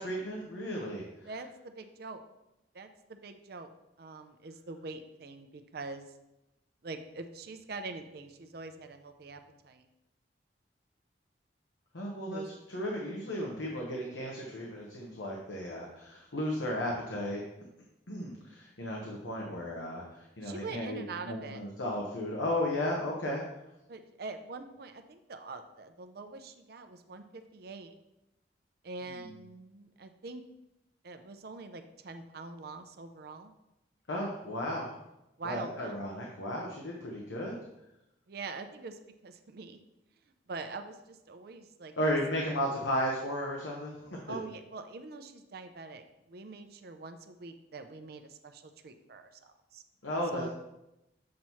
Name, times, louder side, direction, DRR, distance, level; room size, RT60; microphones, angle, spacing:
voice 1, 0.0-1.3 11.9-12.4 12.7-17.4 18.1-23.4 29.2-29.3 34.1-34.9 35.4-37.6 42.0-44.2 50.0-50.4, equal, 90° left, -2 dB, 1.0 m, -34 dB
voice 2, 1.2-2.2 2.7-3.7 4.0-6.1 6.8-9.8 12.2-12.6 20.4-21.6 23.9-27.9 28.8-30.4 31.0-33.5 35.4-36.0 38.3-39.8 40.5-41.9 44.3-49.8 50.3-50.5, right 3 dB, 55° right, 7 dB, 0.5 m, -44 dB
7.5 x 3.1 x 5.6 m, 0.91 s
head